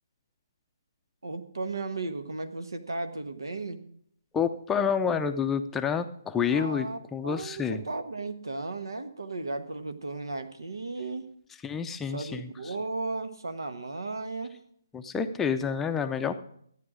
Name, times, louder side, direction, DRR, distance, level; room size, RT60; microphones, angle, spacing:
voice 1, 1.2-3.8 6.5-7.0 7.2-11.3 12.1-14.6, right 3 dB, 80° right, 9 dB, 1.3 m, -35 dB
voice 2, 4.3-7.8 11.6-12.7 14.9-16.3, left 6 dB, 10° left, 7 dB, 0.5 m, -29 dB
14.0 x 9.4 x 5.0 m, 0.67 s
figure-of-eight pair, 150°, 2 cm